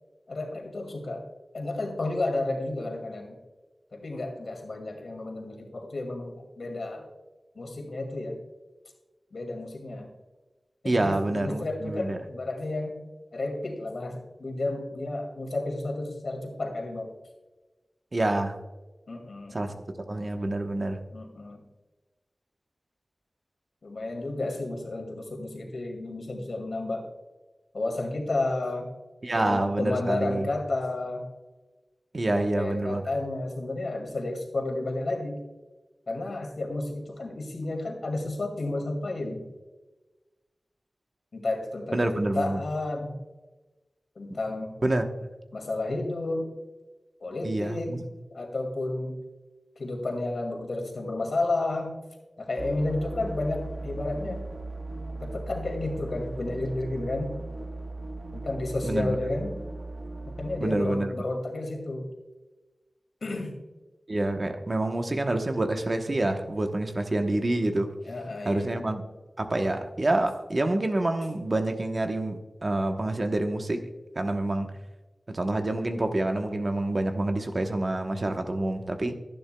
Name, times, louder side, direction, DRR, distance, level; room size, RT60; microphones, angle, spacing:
voice 1, 0.3-1.3 1.5-3.4 3.9-7.1 7.6-8.4 9.3-10.1 10.8-13.0 13.3-17.1 19.1-19.5 21.1-21.6 23.8-27.0 27.7-28.9 29.3-31.3 32.3-35.4 36.1-39.5 41.3-43.2 44.2-44.7 45.5-46.5 47.2-48.0 48.3-49.2 49.8-51.9 52.4-54.4 55.2-57.4 58.3-59.6 60.3-62.1 63.2-63.5 68.0-68.8, left 2 dB, 80° left, 2 dB, 2.2 m, -32 dB
voice 2, 10.8-12.2 18.1-18.6 19.5-19.7 20.1-21.0 29.2-30.5 32.1-33.0 41.9-42.6 44.8-45.3 47.4-48.0 58.8-59.2 60.6-61.1 64.1-68.0 68.4-69.0 69.4-73.8 74.2-74.7 75.3-79.1, right 2 dB, 45° right, 5 dB, 1.0 m, -27 dB
sound 1, 52.6-60.6, right 2 dB, 65° right, 1.1 m, -38 dB
12.0 x 10.5 x 2.2 m, 1.2 s
wide cardioid pair, 70°, 0 cm